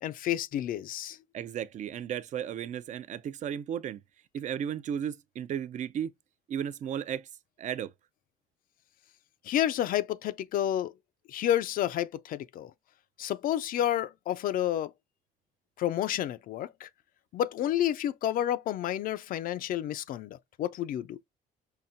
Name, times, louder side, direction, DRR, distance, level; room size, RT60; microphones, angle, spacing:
voice 1, 0.0-1.2 9.4-10.9 11.3-12.7 13.2-14.9 15.8-16.9 17.3-21.2, left 11 dB, 55° left, 0.4 m, -30 dB
voice 2, 1.3-4.0 4.3-6.1 6.5-7.3 7.6-7.9, right 9 dB, 45° right, 0.4 m, -34 dB
5.6 x 2.1 x 2.5 m
cardioid pair, 110°, 17 cm